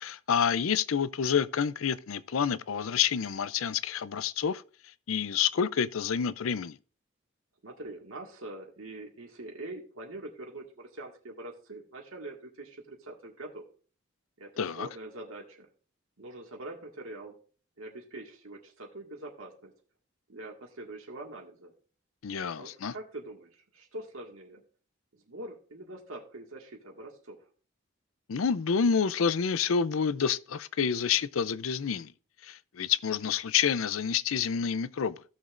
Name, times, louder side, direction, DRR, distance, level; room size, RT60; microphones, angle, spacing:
voice 1, 0.0-4.6 5.1-6.8 14.6-14.9 22.2-22.9 28.3-32.1 32.4-35.2, left 7 dB, 75° left, 0.5 m, -28 dB
voice 2, 7.6-13.7 14.4-15.7 16.2-17.4 17.8-19.7 20.3-21.7 22.6-24.6 25.1-27.4, right 2 dB, 80° right, 1.9 m, -44 dB
16.0 x 6.4 x 2.5 m
head